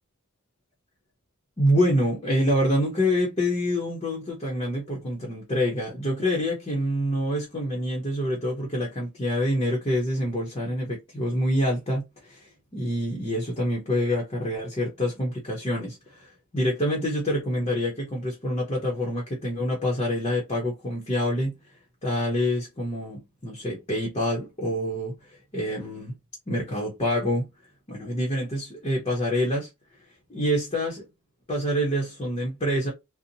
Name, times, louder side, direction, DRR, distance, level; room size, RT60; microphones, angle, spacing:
voice 1, 1.6-21.6 22.0-25.2 25.5-26.2 26.5-27.5 27.9-29.7 30.3-31.0 31.5-32.9, equal, 25° left, 0.7 m, -26 dB
2.6 x 2.0 x 2.7 m
head